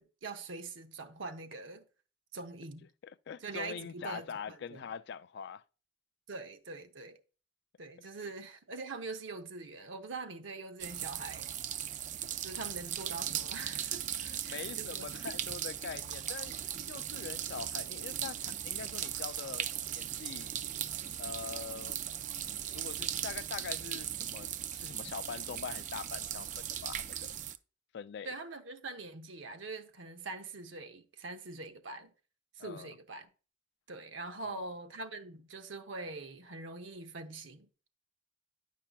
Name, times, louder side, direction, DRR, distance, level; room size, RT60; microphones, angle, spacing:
voice 1, 0.0-1.8 2.3-2.9 3.4-4.9 6.3-7.2 7.8-11.5 12.4-14.0 14.4-15.1 28.2-32.1 32.6-33.3 33.9-37.7, right 3 dB, 80° right, 0.9 m, -43 dB
voice 2, 3.0-5.6 8.2-8.3 14.2-20.5 21.2-22.0 22.7-27.3 27.9-28.3 32.6-32.9 34.3-34.7, left 6 dB, 60° left, 0.3 m, -44 dB
sound 1, 10.8-27.6, right 10 dB, 40° right, 0.4 m, -38 dB
10.0 x 5.6 x 2.3 m
head